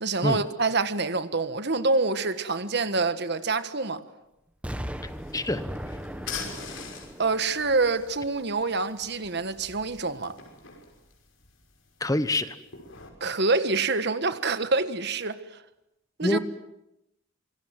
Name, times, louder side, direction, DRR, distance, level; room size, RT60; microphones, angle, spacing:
voice 1, 0.0-4.0 7.2-10.4 13.2-15.4 16.2-16.4, right 3 dB, 55° right, 1.5 m, -26 dB
Explosion, 4.6-8.6 9.0-9.1, equal, 5° right, 1.4 m, -38 dB
sound 1, 4.8-13.1, left 6 dB, 70° left, 5.8 m, -44 dB
voice 2, 12.0-12.5 16.2-16.4, left 1 dB, 15° left, 1.1 m, -25 dB
27.0 x 25.0 x 7.8 m
head